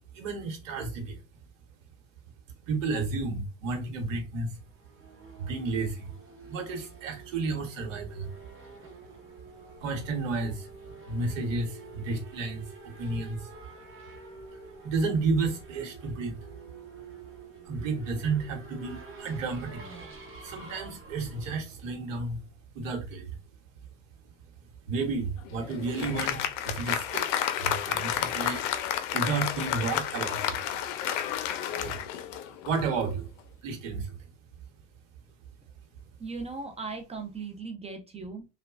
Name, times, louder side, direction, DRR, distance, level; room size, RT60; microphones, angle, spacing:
voice 1, 0.1-1.2 2.7-4.5 5.4-6.1 6.5-8.3 9.8-10.7 11.1-13.5 14.8-16.4 17.6-19.8 20.4-22.4 22.7-23.3 24.9-26.4 26.6-27.3 27.6-30.5 31.8-32.0 32.6-33.3 33.6-34.1, right 4 dB, 85° right, 1.0 m, -32 dB
Race car auto racing / Accelerating revving vroom, 4.5-22.7, right 3 dB, 35° right, 1.0 m, -48 dB
Applause, 25.4-32.9, left 10 dB, 70° left, 0.5 m, -31 dB
voice 2, 36.2-38.5, right 4 dB, 15° right, 0.4 m, -38 dB
3.1 x 2.2 x 2.3 m
hypercardioid pair, 90°, 38 cm